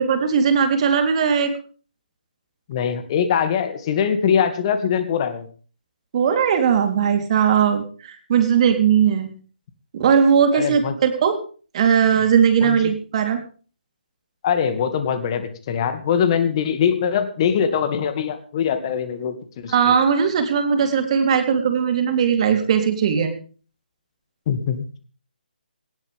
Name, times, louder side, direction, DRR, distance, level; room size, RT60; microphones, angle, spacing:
voice 1, 0.0-1.5 6.1-9.3 9.9-11.4 11.7-13.4 19.7-23.3, right 7 dB, 40° right, 6 dB, 3.8 m, -18 dB
voice 2, 2.7-5.5 10.5-10.9 12.6-12.9 14.4-19.9 24.5-24.8, left 7 dB, 35° left, 10 dB, 2.4 m, -22 dB
18.5 x 17.0 x 3.6 m, 0.40 s
figure-of-eight pair, 145°, 5 cm